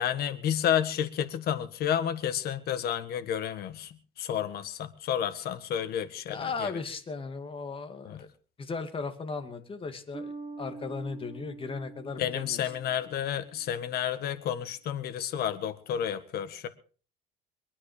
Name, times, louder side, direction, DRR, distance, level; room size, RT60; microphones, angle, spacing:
voice 1, 0.0-6.8 8.0-8.2 12.2-16.7, left 9 dB, 70° left, 10 dB, 1.7 m, -31 dB
voice 2, 6.3-8.3 8.6-10.3 10.6-12.6, left 4 dB, 30° left, 8 dB, 2.5 m, -36 dB
Bass guitar, 10.1-13.7, right 3 dB, 25° right, 6.3 m, -45 dB
23.0 x 9.7 x 5.0 m, 0.39 s
cardioid pair, 110°, 17 cm